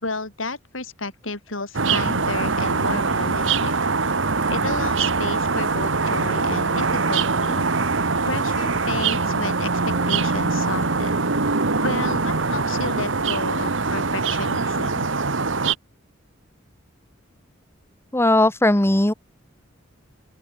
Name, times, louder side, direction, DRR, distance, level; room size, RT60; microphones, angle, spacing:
voice 1, 0.0-3.7 4.5-7.7 8.2-11.2 11.8-15.1, left 3 dB, 85° left, 6.5 m, -32 dB
sound 1, 1.7-15.7, right 4 dB, 70° right, 1.5 m, -23 dB
Wind instrument woodwind instrument, 4.7-8.5 8.8-12.8, left 3 dB, 35° left, 7.1 m, -47 dB
voice 2, 18.1-19.1, left 1 dB, 15° left, 1.1 m, -18 dB
open air
head